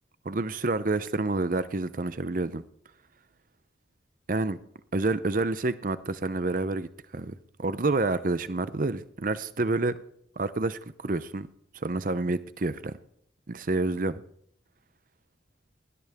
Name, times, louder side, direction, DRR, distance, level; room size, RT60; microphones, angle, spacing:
voice 1, 0.2-2.6 4.3-4.6 4.9-6.9 7.1-7.3 7.6-10.0 10.4-11.5 11.7-13.0 13.5-14.2, right 2 dB, 45° right, 0.6 m, -28 dB
20.0 x 19.5 x 3.6 m
head